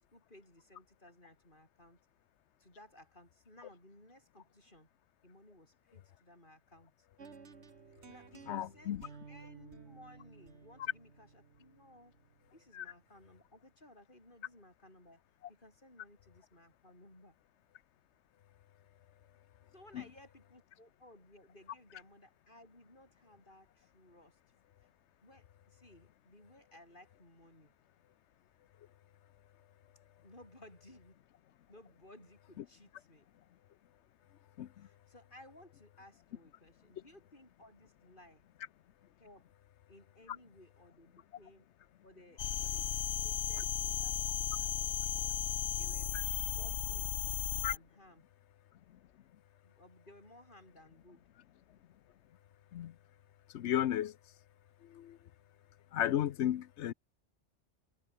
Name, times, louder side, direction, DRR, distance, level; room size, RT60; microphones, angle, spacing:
voice 1, 0.0-2.0 2.6-4.9 5.2-7.1 8.1-12.2 12.5-15.2 15.5-17.4 19.7-24.4 24.8-24.9 25.2-27.7 30.2-31.2 31.7-33.3 34.8-38.5 39.2-39.5 39.9-41.7 42.0-45.4 45.8-47.1 47.7-48.2 49.6-51.3, left 1 dB, 40° left, 6.8 m, -59 dB
sound 1, 7.2-13.2, right 5 dB, 60° right, 2.1 m, -55 dB
voice 2, 8.5-9.0 12.7-12.8 19.9-20.0 32.6-32.7 34.6-34.9 47.6-47.7 52.7-52.9 53.5-54.2 54.8-55.2 55.9-56.9, left 11 dB, 65° left, 0.9 m, -34 dB
sound 2, 42.4-47.8, left 11 dB, 90° left, 1.1 m, -35 dB
omnidirectional pair, 1.3 m